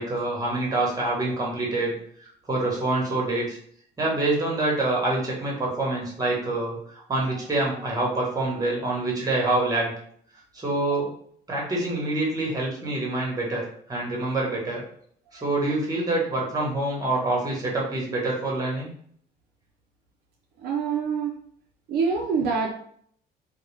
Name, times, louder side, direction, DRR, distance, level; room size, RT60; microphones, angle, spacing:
voice 1, 0.0-1.9 2.5-3.6 4.0-6.8 7.1-9.9 10.5-11.1 11.5-14.8 15.3-18.9, right 2 dB, 20° right, -3 dB, 1.0 m, -26 dB
voice 2, 20.6-21.3 21.9-22.7, right 5 dB, 70° right, 1 dB, 0.4 m, -25 dB
2.3 x 2.1 x 3.1 m, 0.62 s
cardioid pair, 110°, 17 cm